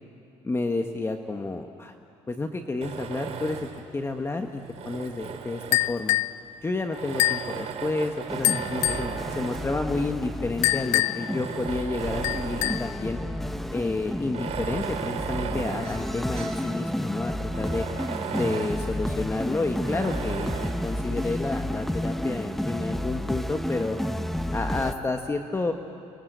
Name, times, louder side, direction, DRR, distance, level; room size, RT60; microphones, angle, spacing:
voice 1, 0.4-1.9 2.3-6.2 6.6-13.2 13.7-17.8 18.3-24.0 24.5-25.7, left 3 dB, 20° left, 5 dB, 1.4 m, -30 dB
Tools, 2.8-3.9 4.6-6.2 6.9-9.8 10.5-10.6 11.1-12.9 13.3-13.4 14.2-16.7 17.1-17.2 17.5-18.9 19.8-20.9, right 7 dB, 60° right, 2.6 m, -35 dB
sound 1, 5.7-6.4 7.2-7.5 8.4-9.1 10.6-11.3 12.2-13.0, left 17 dB, 75° left, 0.6 m, -25 dB
sound 2, 8.3-24.9, left 1 dB, ahead, 1.0 m, -31 dB
30.0 x 22.0 x 8.1 m, 2.5 s
cardioid pair, 90°, 12 cm